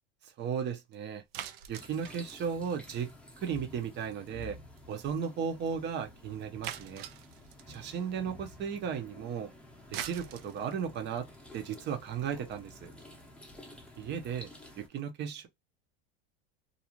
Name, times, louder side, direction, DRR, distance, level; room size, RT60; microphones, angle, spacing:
voice 1, 0.2-1.2 1.7-3.1 3.4-4.6 4.9-7.1 7.7-9.5 9.9-11.3 11.5-12.9 14.0-14.5 14.8-15.5, right 7 dB, 35° right, 0.7 m, -35 dB
sound 1, 1.3-3.6 3.8-4.1 4.4-4.5 4.8-4.9 5.2-5.3 5.7-5.8 6.6-7.9 9.7-14.0, right 11 dB, 75° right, 0.6 m, -44 dB
sound 2, 1.7-14.9, left 1 dB, 5° left, 0.7 m, -51 dB
2.5 x 2.3 x 2.8 m
cardioid pair, 140°, 30 cm